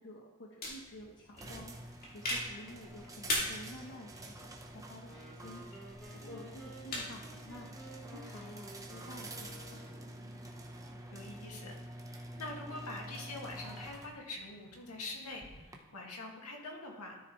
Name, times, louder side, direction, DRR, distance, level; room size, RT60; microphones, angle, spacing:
voice 1, 0.0-7.7 8.1-10.2, left 1 dB, 60° left, -1 dB, 1.0 m, -51 dB
sound 1, 0.6-8.2, left 1 dB, 45° left, 2.5 m, -42 dB
sound 2, 1.4-15.8, right 1 dB, 15° right, 0.9 m, -48 dB
Wind instrument woodwind instrument, 5.0-10.2, right 1 dB, ahead, 1.5 m, -53 dB
voice 2, 11.1-17.2, left 2 dB, 90° left, 0 dB, 2.0 m, -45 dB
13.0 x 7.6 x 3.2 m, 1.3 s
head